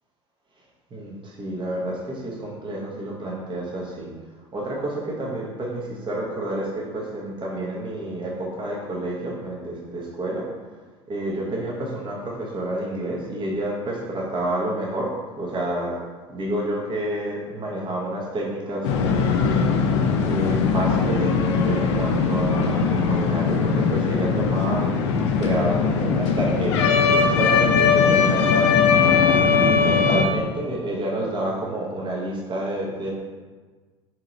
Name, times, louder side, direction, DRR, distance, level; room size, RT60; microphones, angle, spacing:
voice 1, 0.9-4.1 4.5-10.5 11.1-16.0 16.3-33.1, right 1 dB, 30° right, -3 dB, 1.0 m, -29 dB
sound 1, 18.8-30.2, left 5 dB, 70° left, 0.4 m, -20 dB
3.7 x 3.0 x 3.9 m, 1.4 s
figure-of-eight pair, 65°, 15 cm